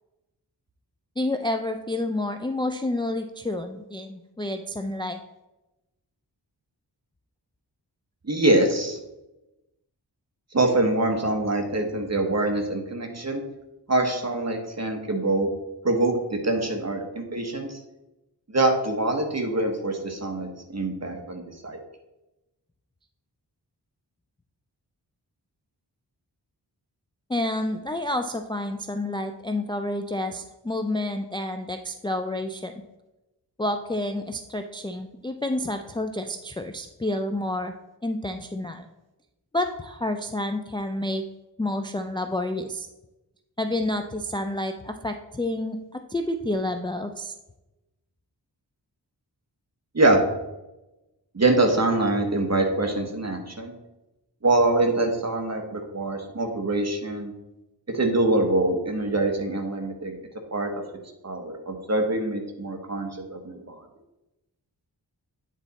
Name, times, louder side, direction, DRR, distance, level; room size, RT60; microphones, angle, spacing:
voice 1, 1.2-5.2 27.3-32.7 33.6-37.7 38.0-38.9 39.5-41.2 41.6-42.9 43.6-47.3, left 1 dB, 10° left, 6 dB, 0.3 m, -29 dB
voice 2, 8.2-9.0 10.5-13.4 13.9-15.5 15.8-17.8 18.5-21.8 49.9-50.2 51.3-53.7 54.4-57.3 57.9-60.2 60.5-60.7 61.2-63.8, right 2 dB, 40° right, 3 dB, 1.2 m, -24 dB
9.0 x 4.0 x 4.1 m, 0.98 s
wide cardioid pair, 70°, 42 cm